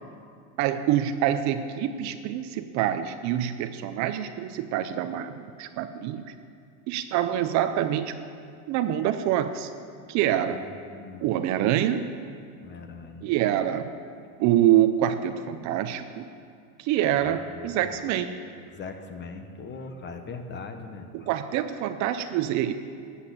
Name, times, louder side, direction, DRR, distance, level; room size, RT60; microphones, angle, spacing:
voice 1, 0.6-6.3 6.9-8.1 8.7-9.7 10.1-10.7 11.2-12.1 13.2-13.9 14.4-16.2 16.8-18.3 21.1-22.7, right 11 dB, 40° right, 10 dB, 0.7 m, -26 dB
voice 2, 10.5-11.3 12.6-13.3 17.1-17.9 18.7-21.3, left 4 dB, 25° left, 7 dB, 1.1 m, -41 dB
13.0 x 8.2 x 8.7 m, 2.3 s
supercardioid pair, 125°, 43 cm